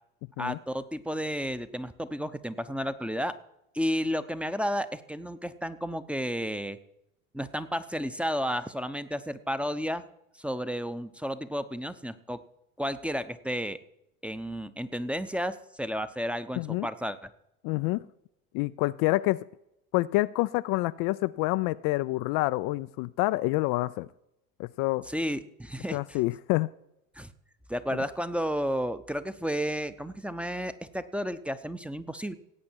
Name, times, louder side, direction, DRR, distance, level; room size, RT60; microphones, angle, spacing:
voice 1, 0.4-3.4 3.7-6.8 7.3-10.0 10.4-12.4 12.8-13.8 14.2-17.3 25.0-26.2 27.2-27.3 27.7-32.4, equal, 5° right, 12 dB, 0.8 m, -32 dB
voice 2, 16.6-16.9 17.6-18.0 18.5-19.5 19.9-24.1 24.6-25.1 25.9-26.7, left 20 dB, 55° left, 14 dB, 0.5 m, -27 dB
17.5 x 8.4 x 4.6 m, 0.82 s
hypercardioid pair, 70°, 41 cm